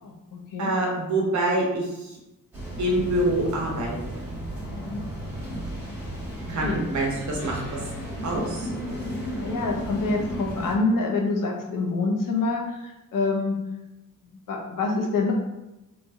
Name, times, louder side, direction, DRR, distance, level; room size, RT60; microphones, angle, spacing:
voice 1, 0.0-0.7 4.7-5.0 6.6-6.9 9.3-13.6 14.2-15.3, left 3 dB, 70° left, 0 dB, 0.7 m, -26 dB
voice 2, 0.6-2.2 2.8-4.0 4.2-4.3 6.5-7.8 8.2-8.7, right 1 dB, 55° right, -2 dB, 0.9 m, -26 dB
sound 1, 2.5-10.7, equal, 5° right, 1.3 m, -34 dB
3.2 x 2.6 x 2.3 m, 0.97 s
wide cardioid pair, 130°, 34 cm